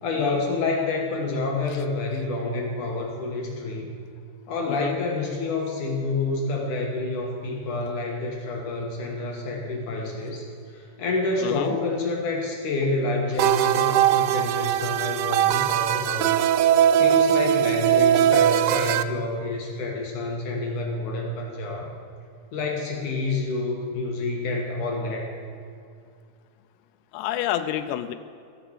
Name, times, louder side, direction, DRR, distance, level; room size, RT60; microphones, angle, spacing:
voice 1, 0.0-3.9 4.5-10.5 10.7-16.3 17.0-21.9 22.5-25.3, left 3 dB, 60° left, 0 dB, 2.3 m, -28 dB
voice 2, 4.7-5.0 11.4-11.7 27.1-28.1, left 12 dB, 85° left, 9 dB, 2.8 m, -29 dB
sound 1, 13.4-19.0, right 11 dB, 85° right, 2.2 m, -20 dB
15.0 x 10.5 x 7.4 m, 2.3 s
omnidirectional pair, 5.1 m